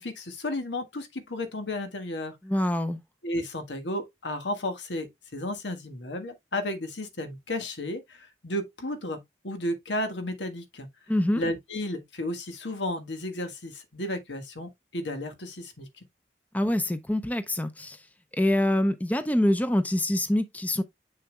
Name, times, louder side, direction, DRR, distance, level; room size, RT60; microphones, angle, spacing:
voice 1, 0.0-2.4 3.2-10.9 11.3-15.9, left 1 dB, 90° left, 1.5 m, -33 dB
voice 2, 2.4-3.0 11.1-11.4 16.5-18.0 18.3-20.8, left 1 dB, 10° left, 0.5 m, -25 dB
7.1 x 6.5 x 2.2 m
head